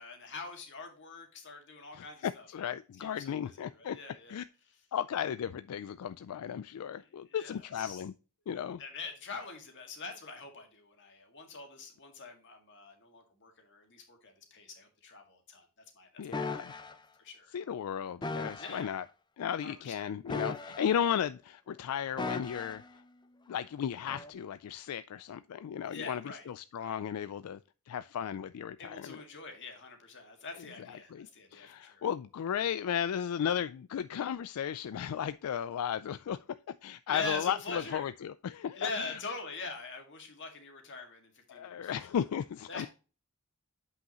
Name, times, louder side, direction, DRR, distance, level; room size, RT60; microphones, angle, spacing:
voice 1, 0.0-2.5 3.0-4.4 7.0-8.0 8.8-15.6 16.0-16.5 16.8-17.5 18.6-18.9 19.6-20.1 25.9-26.5 26.8-27.0 28.8-32.0 37.1-38.1 38.8-41.9 42.7-42.9, left 3 dB, 55° left, 2.0 m, -43 dB
voice 2, 1.9-4.0 4.3-4.4 4.9-8.1 8.5-8.8 16.2-16.7 17.5-19.0 19.4-22.8 23.5-27.6 27.9-29.2 31.1-36.4 36.8-39.2 41.5-42.9, left 8 dB, 80° left, 0.3 m, -35 dB
sound 1, 16.3-16.9 18.2-18.9 20.2-21.2 22.2-22.9 24.1-24.3, left 3 dB, 20° left, 0.5 m, -38 dB
7.8 x 5.7 x 2.9 m
head